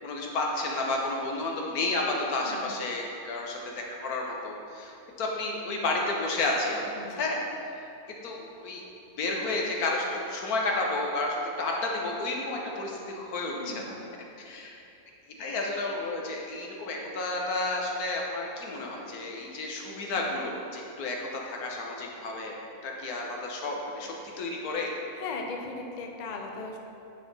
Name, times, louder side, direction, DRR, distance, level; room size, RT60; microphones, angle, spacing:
voice 1, 0.0-7.4 7.7-7.9 8.2-8.8 9.2-13.7 14.4-14.7 15.4-22.6 22.8-24.9, left 2 dB, 90° left, -1 dB, 1.5 m, -31 dB
voice 2, 2.4-2.9 7.0-7.2 13.6-14.1 25.1-26.8, left 3 dB, 45° left, 2 dB, 0.6 m, -38 dB
9.6 x 4.3 x 4.1 m, 2.7 s
omnidirectional pair, 1.5 m